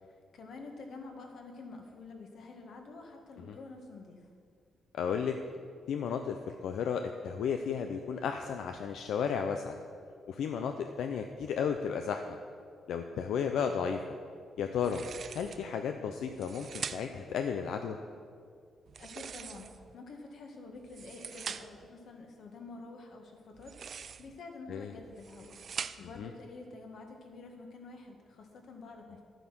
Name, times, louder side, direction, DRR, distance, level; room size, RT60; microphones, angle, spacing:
voice 1, 0.3-4.3 19.0-25.6 26.0-29.2, left 3 dB, 55° left, 3 dB, 1.7 m, -48 dB
voice 2, 4.9-5.3 5.9-9.8 10.3-12.4 12.9-14.0 14.6-15.0 15.3-18.0 24.7-24.9 26.2-26.3, left 7 dB, 75° left, 6 dB, 0.6 m, -33 dB
sound 1, 14.8-15.7 16.3-17.3 18.9-19.9 20.7-21.9 23.5-24.4 25.0-26.2, right 7 dB, 45° right, 0.4 m, -43 dB
12.5 x 9.0 x 6.1 m, 2.2 s
cardioid pair, 160°, 0 cm